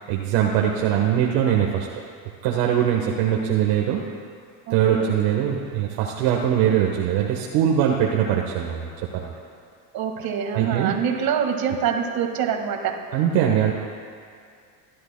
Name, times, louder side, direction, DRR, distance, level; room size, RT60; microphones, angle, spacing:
voice 1, 0.1-1.9 2.4-4.1 4.7-9.3 10.5-10.9 13.1-13.7, right 9 dB, 65° right, -1 dB, 1.3 m, -22 dB
voice 2, 4.7-5.2 9.9-13.0, right 7 dB, 50° right, 3 dB, 1.8 m, -25 dB
29.0 x 11.0 x 2.2 m, 2.2 s
supercardioid pair, 95°, 47 cm